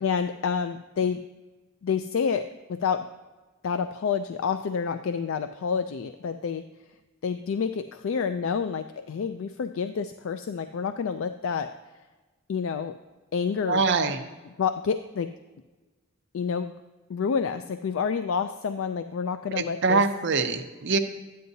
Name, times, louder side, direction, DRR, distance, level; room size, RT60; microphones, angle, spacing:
voice 1, 0.0-1.2 1.8-3.1 3.6-6.6 7.2-11.7 12.5-13.0 13.3-13.8 14.6-15.3 16.3-16.7 17.1-20.0, left 6 dB, 65° left, 9 dB, 0.3 m, -28 dB
voice 2, 13.7-14.2 19.5-21.0, right 4 dB, 55° right, 7 dB, 0.6 m, -24 dB
12.5 x 9.4 x 2.7 m, 1.2 s
head